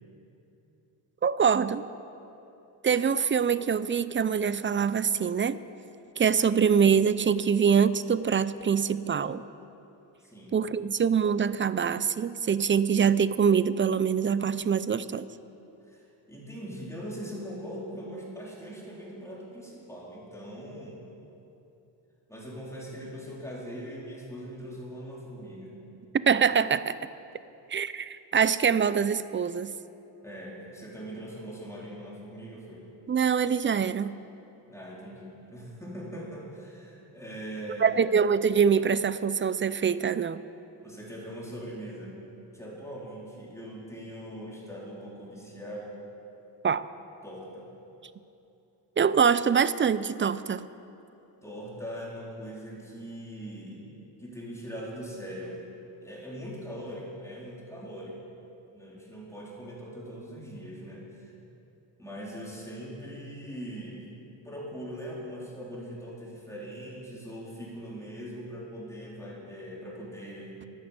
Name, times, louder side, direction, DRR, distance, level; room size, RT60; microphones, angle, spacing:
voice 1, 1.2-1.8 2.8-5.6 6.2-9.4 10.5-15.3 26.3-27.0 27.7-29.7 33.1-34.2 37.8-40.4 46.6-46.9 49.0-50.7, right 7 dB, 30° right, 16 dB, 0.4 m, -24 dB
voice 2, 10.2-10.6 15.8-21.0 22.3-25.8 30.2-32.9 34.7-38.0 40.8-42.1 42.5-45.9 47.2-47.7 51.4-53.9 54.2-55.6 56.0-58.2 58.7-61.3 62.0-64.1 64.4-70.7, equal, 5° left, -5 dB, 3.8 m, -41 dB
12.0 x 10.0 x 8.1 m, 2.8 s
cardioid pair, 95°, 45 cm